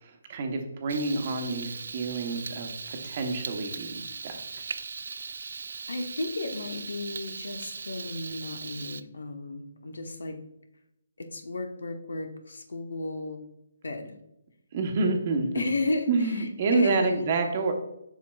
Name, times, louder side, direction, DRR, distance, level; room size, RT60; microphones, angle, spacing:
voice 1, 0.0-4.4 14.7-15.6 16.1-17.7, right 4 dB, 35° right, 4 dB, 0.9 m, -28 dB
Frying (food), 0.9-9.0, right 5 dB, 70° right, 0.3 m, -39 dB
voice 2, 5.9-10.4 11.2-13.4 13.8-14.1 15.5-17.2, left 2 dB, 85° left, 5 dB, 1.0 m, -33 dB
7.2 x 5.9 x 2.3 m, 0.84 s
hypercardioid pair, 160°, 0 cm